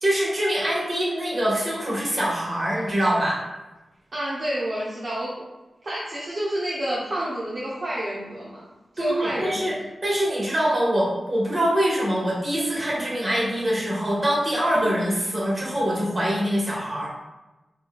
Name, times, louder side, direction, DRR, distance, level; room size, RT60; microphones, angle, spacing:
voice 1, 0.0-3.4 9.0-9.7 10.0-17.1, equal, 40° right, -6 dB, 1.5 m, -24 dB
voice 2, 4.1-5.3 5.8-8.6 8.9-9.7 14.7-15.0, right 1 dB, 55° right, -7 dB, 0.6 m, -29 dB
4.3 x 2.3 x 2.3 m, 1.1 s
cardioid pair, 45°, 0 cm